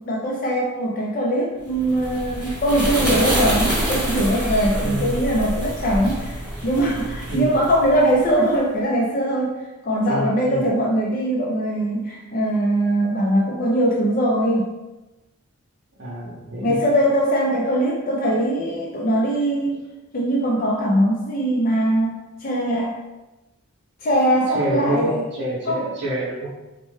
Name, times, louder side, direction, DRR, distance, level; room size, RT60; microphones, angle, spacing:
voice 1, 0.0-9.5 9.8-14.7 16.6-19.8 20.1-22.1 22.4-23.0 24.0-25.2 25.7-25.9, right 1 dB, 45° left, -3 dB, 0.4 m, -21 dB
sound 1, 1.7-8.3, right 1 dB, 5° right, 1.2 m, -26 dB
voice 2, 4.8-5.1 7.3-7.6 10.0-10.7 16.0-16.8 24.5-26.5, right 1 dB, 60° right, -8 dB, 0.7 m, -27 dB
4.2 x 2.2 x 3.1 m, 1.1 s
head